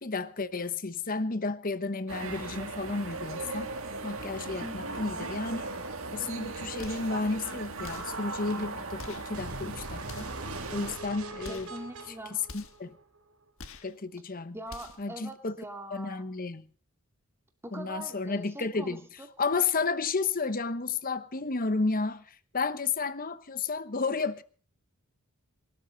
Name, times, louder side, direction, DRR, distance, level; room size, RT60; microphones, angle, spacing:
voice 1, 0.0-3.7 4.0-5.6 6.1-10.3 10.7-11.7 12.5-13.0 13.8-14.6 15.0-15.6 15.9-16.7 17.7-19.0 19.4-24.4, left 4 dB, 40° left, 1.0 m, -32 dB
sound 1, 2.1-11.0, right 3 dB, 60° right, 2.4 m, -38 dB
voice 2, 4.6-5.0 11.4-12.4 14.5-16.3 17.6-19.3, right 1 dB, 10° right, 2.4 m, -43 dB
sound 2, 6.8-7.2 7.8-8.2 9.0-9.3 10.0-10.5 11.4-11.8 12.5-12.9 13.6-14.0 14.7-15.1, left 4 dB, 65° left, 1.5 m, -46 dB
sound 3, 9.3-13.3, right 2 dB, 75° right, 3.5 m, -42 dB
25.0 x 12.5 x 4.0 m
head